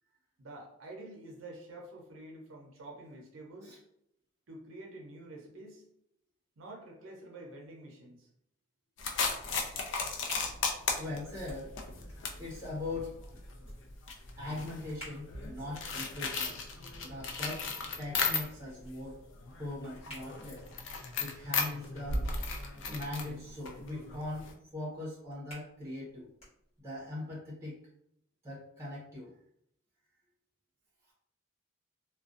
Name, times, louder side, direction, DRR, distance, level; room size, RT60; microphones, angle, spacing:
voice 1, 0.4-3.8 4.5-5.8 6.6-8.3, right 2 dB, 75° right, 1 dB, 0.6 m, -48 dB
sound 1, 9.0-18.8 19.1-24.5, left 4 dB, 65° left, 0.4 m, -36 dB
voice 2, 10.6-11.7 12.4-13.1 14.4-16.6 17.0-17.7 18.0-19.2 19.6-20.6 21.2-22.2 22.9-26.3 26.8-27.8 28.4-29.3, left 2 dB, 15° right, -5 dB, 0.7 m, -40 dB
sound 2, 14.2-27.1, equal, 30° left, 1.2 m, -56 dB
2.4 x 2.1 x 2.4 m, 0.73 s
head